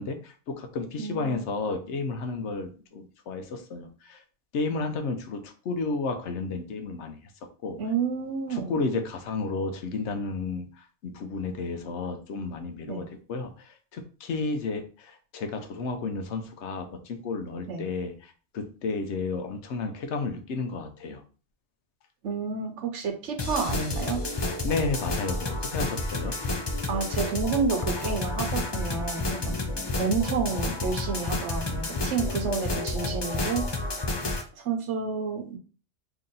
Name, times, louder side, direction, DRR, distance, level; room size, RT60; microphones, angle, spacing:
voice 1, 0.0-4.2 4.5-7.2 7.6-7.8 8.5-21.2 24.6-26.4, left 3 dB, 80° left, 6 dB, 0.9 m, -32 dB
voice 2, 1.0-1.4 7.8-8.7 12.8-13.0 17.7-17.8 22.2-24.2 26.9-29.6 30.0-33.9 34.6-35.6, right 5 dB, 85° right, 4 dB, 1.1 m, -30 dB
sound 1, 23.4-34.4, left 2 dB, 35° left, 0.4 m, -30 dB
3.0 x 2.7 x 3.8 m, 0.38 s
omnidirectional pair, 1.2 m